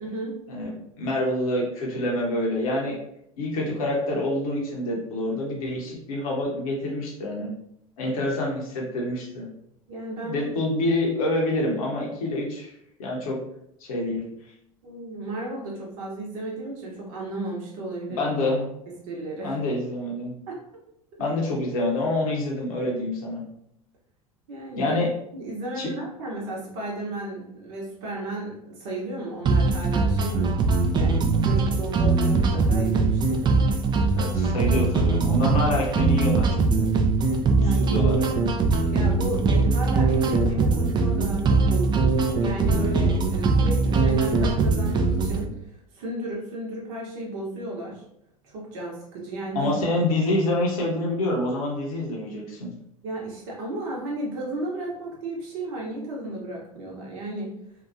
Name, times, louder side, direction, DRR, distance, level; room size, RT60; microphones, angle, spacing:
voice 1, 0.0-0.3 9.9-10.4 14.8-18.3 19.1-19.6 20.5-20.6 24.5-25.0 25.3-30.5 30.9-34.3 37.5-38.5 38.9-48.0 48.4-49.7 53.0-57.5, right 1 dB, 60° right, -3 dB, 0.9 m, -34 dB
voice 2, 1.0-3.0 3.4-7.5 8.0-9.5 10.2-12.7 13.0-13.4 13.8-14.2 18.1-18.7 19.4-20.3 21.2-23.4 24.8-25.1 25.8-25.9 34.1-36.9 37.8-38.2 49.5-52.7, left 1 dB, 70° left, -2 dB, 0.8 m, -26 dB
sound 1, 29.5-45.5, right 3 dB, 25° right, 0.4 m, -21 dB
2.8 x 2.2 x 2.5 m, 0.75 s
hypercardioid pair, 80°, 19 cm